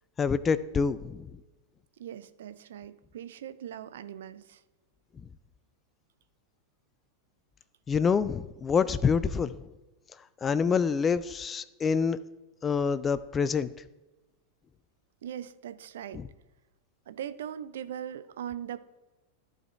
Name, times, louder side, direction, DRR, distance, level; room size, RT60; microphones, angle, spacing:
voice 1, 0.2-1.3 7.9-9.6 10.4-12.2 12.6-13.7 16.1-16.3, left 6 dB, 20° left, 16 dB, 0.3 m, -26 dB
voice 2, 2.0-4.6 15.2-16.2 17.1-18.8, right 10 dB, 60° right, 12 dB, 0.5 m, -40 dB
14.0 x 4.8 x 3.3 m, 1.1 s
figure-of-eight pair, 90°, 0 cm